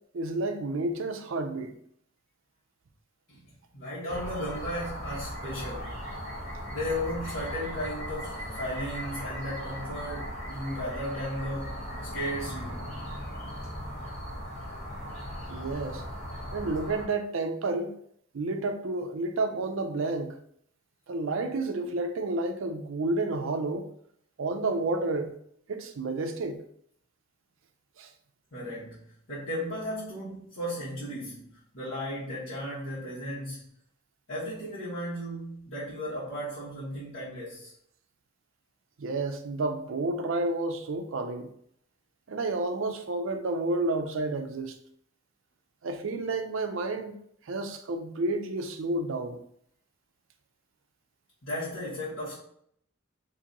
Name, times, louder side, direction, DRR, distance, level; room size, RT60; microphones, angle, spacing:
voice 1, 0.1-1.7 15.5-16.0 16.5-17.9 18.3-20.4 21.1-23.9 24.4-25.3 25.7-26.6 28.0-28.1 39.0-41.5 42.3-44.7 45.8-47.2 47.5-49.4, right 2 dB, 65° right, 6 dB, 0.5 m, -30 dB
voice 2, 3.3-6.0 6.7-11.7 12.1-12.9 28.5-29.0 29.3-33.7 34.3-37.7 51.4-52.3, equal, 65° left, -11 dB, 1.4 m, -35 dB
sound 1, 4.1-17.0, equal, 30° left, 1.0 m, -38 dB
2.9 x 2.6 x 3.8 m, 0.67 s
head